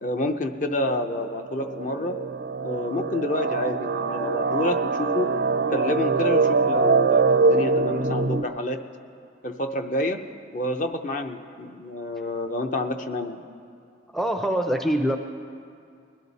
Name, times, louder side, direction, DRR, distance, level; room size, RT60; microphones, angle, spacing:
voice 1, 0.0-2.2 2.6-5.3 5.7-8.8 9.4-10.2 10.5-13.4, left 1 dB, 40° left, 6 dB, 0.6 m, -28 dB
sound 1, 0.8-8.4, right 4 dB, 65° right, 0.5 m, -23 dB
voice 2, 14.1-15.2, right 1 dB, ahead, 4 dB, 0.5 m, -24 dB
21.0 x 12.0 x 4.1 m, 2.4 s
head